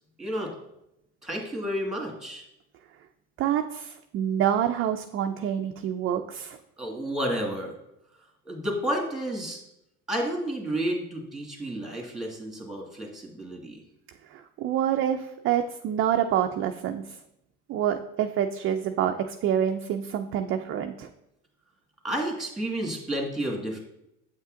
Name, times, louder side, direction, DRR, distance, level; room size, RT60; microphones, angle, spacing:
voice 1, 0.2-0.5 1.2-2.4 6.8-7.7 8.5-9.6 10.1-13.8 22.0-23.8, right 1 dB, ahead, 0 dB, 1.7 m, -31 dB
voice 2, 3.4-6.6 14.3-17.2 17.7-21.1, right 9 dB, 35° right, 6 dB, 0.4 m, -27 dB
7.9 x 5.4 x 2.5 m, 0.84 s
supercardioid pair, 100°, 37 cm